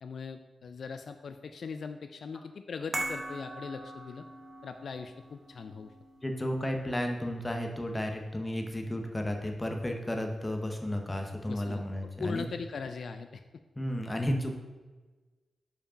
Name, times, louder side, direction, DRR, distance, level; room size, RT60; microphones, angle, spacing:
voice 1, 0.0-4.2 4.6-5.9 11.5-11.8 12.2-13.4, left 5 dB, 65° left, 8 dB, 0.3 m, -40 dB
sound 1, 2.9-9.3 9.6-9.8, right 2 dB, 25° right, 0.9 m, -42 dB
voice 2, 6.2-12.4 13.8-14.6, left 1 dB, 15° left, 3 dB, 0.9 m, -33 dB
5.2 x 4.9 x 5.0 m, 1.3 s
wide cardioid pair, 95°, 0 cm